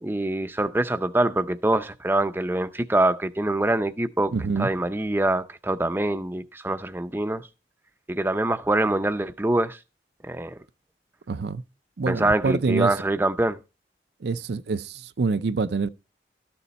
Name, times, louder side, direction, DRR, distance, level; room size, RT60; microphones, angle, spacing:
voice 1, 0.0-4.3 4.6-7.4 8.1-9.8 10.2-10.6 12.1-13.6, right 1 dB, 10° right, 0.5 m, -24 dB
voice 2, 4.3-4.7 11.3-11.6 12.0-12.9 14.2-15.9, right 4 dB, 65° right, 0.5 m, -26 dB
13.0 x 7.0 x 4.1 m
head